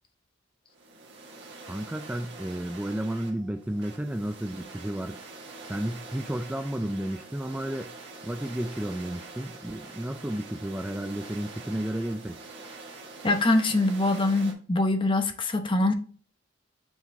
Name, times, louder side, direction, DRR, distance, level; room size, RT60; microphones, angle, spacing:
sound 1, 0.7-14.5, right 3 dB, 60° right, 1.7 m, -45 dB
voice 1, 1.7-5.2 5.7-7.9 8.2-12.4, right 1 dB, 5° right, 0.3 m, -32 dB
voice 2, 13.2-15.9, left 2 dB, 25° left, 0.8 m, -24 dB
7.1 x 4.1 x 3.4 m
head